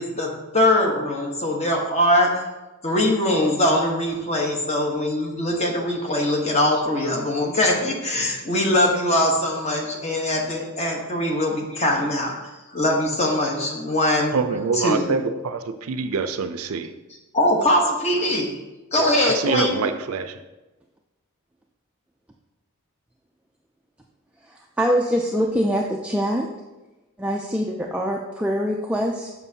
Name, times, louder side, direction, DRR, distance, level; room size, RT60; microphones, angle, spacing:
voice 1, 0.0-2.3 2.8-14.3 14.8-15.2 17.3-18.5 18.9-19.8, left 1 dB, 30° left, 1.0 m, -22 dB
voice 2, 14.3-16.9 19.0-20.4, right 5 dB, 80° right, 0.5 m, -25 dB
voice 3, 24.5-26.5 27.2-29.3, equal, 5° right, 0.3 m, -24 dB
7.1 x 5.9 x 2.7 m
head